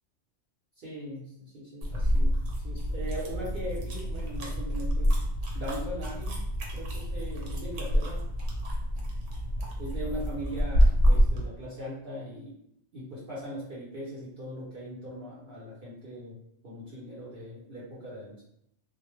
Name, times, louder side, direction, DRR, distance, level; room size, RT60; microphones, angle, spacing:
voice 1, 0.8-5.1 5.5-6.4 6.7-8.3 9.8-12.5 12.9-16.3 16.6-18.4, equal, 55° right, -8 dB, 0.8 m, -40 dB
sound 1, 1.8-11.5, equal, 85° right, 0.9 m, -27 dB
2.2 x 2.0 x 3.0 m, 0.72 s
omnidirectional pair, 1.2 m